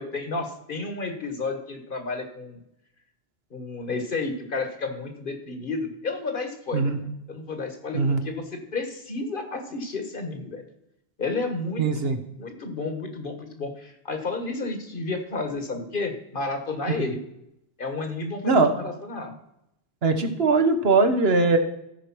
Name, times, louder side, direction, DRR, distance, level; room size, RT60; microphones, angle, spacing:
voice 1, 0.0-2.6 3.5-10.6 11.2-11.8 12.4-17.2 17.8-19.4, left 3 dB, 55° left, 6 dB, 1.6 m, -31 dB
voice 2, 11.8-12.2 16.9-17.0 18.4-18.7 20.0-21.6, right 3 dB, 70° right, 6 dB, 1.4 m, -20 dB
14.5 x 4.8 x 6.1 m, 0.81 s
omnidirectional pair, 1.1 m